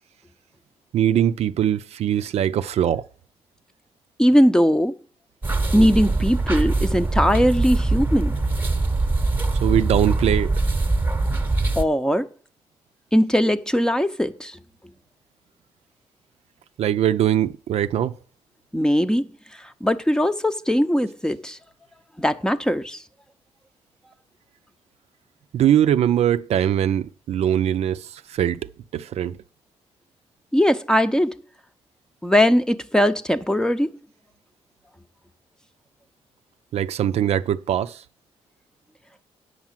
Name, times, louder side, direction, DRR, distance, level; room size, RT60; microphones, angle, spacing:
voice 1, 0.9-3.1 9.6-10.5 16.8-18.2 25.5-28.6 28.9-29.4 36.7-38.0, right 10 dB, 75° right, 0.5 m, -21 dB
voice 2, 4.2-4.9 5.7-8.4 11.8-12.3 13.1-14.6 18.7-19.3 19.6-21.6 22.2-23.0 30.5-31.4 32.2-34.0, equal, 5° left, 0.7 m, -20 dB
sound 1, 5.4-11.8, right 3 dB, 20° right, 1.0 m, -22 dB
8.2 x 6.2 x 7.3 m
cardioid pair, 90°, 11 cm